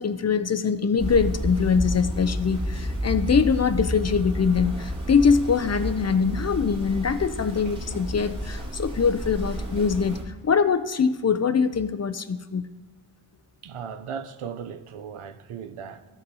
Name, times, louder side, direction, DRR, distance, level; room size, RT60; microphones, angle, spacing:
voice 1, 0.0-10.2 10.4-12.6, left 6 dB, 35° left, 0.4 m, -23 dB
sound 1, 1.0-10.2, equal, 40° right, 1.9 m, -31 dB
voice 2, 13.6-16.0, right 7 dB, 85° right, 0.6 m, -37 dB
13.5 x 5.4 x 2.7 m
cardioid pair, 60°, 49 cm